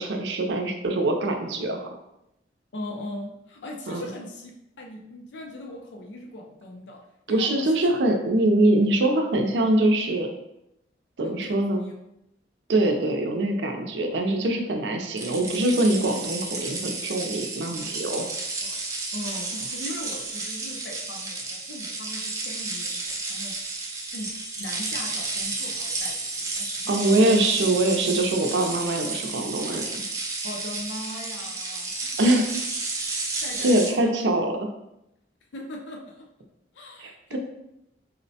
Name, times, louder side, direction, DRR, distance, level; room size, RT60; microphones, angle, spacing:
voice 1, 0.0-1.9 3.9-4.0 7.3-10.3 11.2-11.8 12.7-18.3 26.9-30.0 32.2-32.5 33.6-34.7 37.0-37.4, right 1 dB, 80° right, 3 dB, 0.5 m, -23 dB
voice 2, 2.7-7.0 7.4-7.9 11.2-11.9 18.6-18.8 19.1-27.4 30.4-32.2 33.4-34.1 35.5-36.3 36.7-37.4, left 1 dB, 85° left, 1 dB, 0.5 m, -40 dB
sound 1, 15.2-33.9, right 3 dB, 20° right, 0.4 m, -32 dB
4.1 x 2.1 x 2.7 m, 0.84 s
head